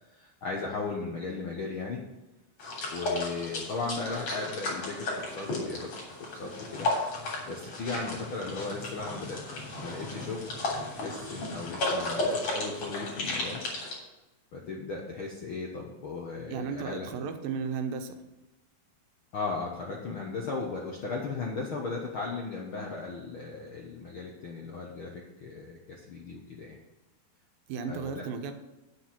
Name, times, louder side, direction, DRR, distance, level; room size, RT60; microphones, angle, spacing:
voice 1, 0.1-2.0 2.9-5.9 6.2-6.9 7.5-10.4 10.8-13.6 14.5-17.1 19.3-26.8 27.9-28.2, left 4 dB, 65° left, -1 dB, 1.2 m, -36 dB
sound 1, 2.6-14.0, left 2 dB, 50° left, 4.3 m, -34 dB
voice 2, 16.5-18.2 27.7-28.5, right 5 dB, 85° right, 6 dB, 2.7 m, -34 dB
9.8 x 7.2 x 5.9 m, 1.0 s
omnidirectional pair, 4.0 m